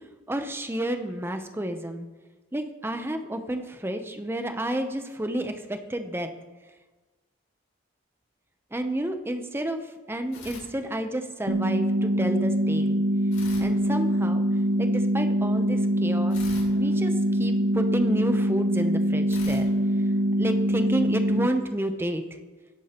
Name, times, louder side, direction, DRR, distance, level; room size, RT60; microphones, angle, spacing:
voice 1, 0.3-2.1 2.5-6.3 8.7-9.8 10.1-13.0 13.6-14.4 14.8-16.4 16.7-19.7 20.4-22.2, right 1 dB, 10° right, 7 dB, 0.6 m, -30 dB
sound 1, 10.3-11.5 13.3-14.7 16.3-18.0 19.3-20.8, left 3 dB, 80° left, 3.2 m, -46 dB
sound 2, 11.5-21.5, equal, 70° right, 0.9 m, -24 dB
17.0 x 8.1 x 2.9 m, 1.3 s
head